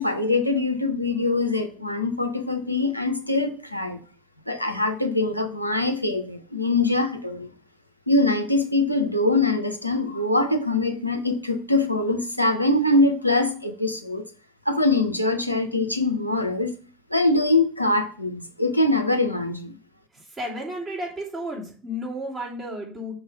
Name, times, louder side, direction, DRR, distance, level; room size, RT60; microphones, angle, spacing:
voice 1, 0.0-4.0 4.5-7.5 8.1-14.2 14.7-16.7 17.1-19.7, left 2 dB, 90° left, 5 dB, 0.6 m, -23 dB
voice 2, 20.4-23.1, equal, 25° right, -5 dB, 2.7 m, -32 dB
5.9 x 3.1 x 5.2 m, 0.42 s
figure-of-eight pair, 75°, 0 cm